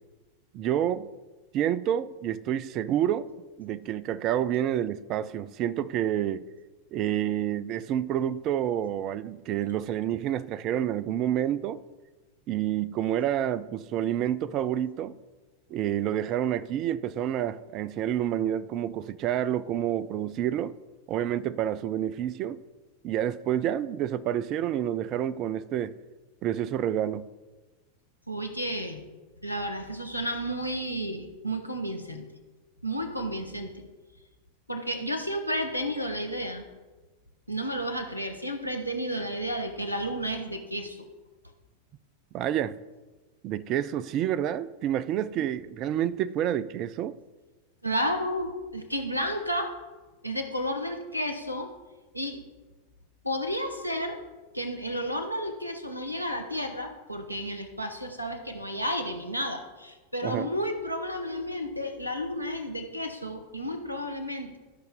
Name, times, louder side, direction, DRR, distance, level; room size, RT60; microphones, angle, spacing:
voice 1, 0.5-1.1 1.5-3.3 3.6-6.4 6.9-11.8 12.5-15.1 15.7-20.7 21.1-22.6 23.0-25.9 26.4-27.3 42.3-42.8 43.4-47.2 60.2-60.5, right 11 dB, 35° right, 0.4 m, -28 dB
voice 2, 28.3-29.0 29.4-32.3 32.8-33.8 34.7-36.6 37.5-41.0 47.8-49.7 50.2-51.7 52.1-52.4 53.2-54.2 54.5-64.6, equal, 90° left, 1.0 m, -32 dB
14.5 x 5.8 x 3.6 m
figure-of-eight pair, 90°, 0 cm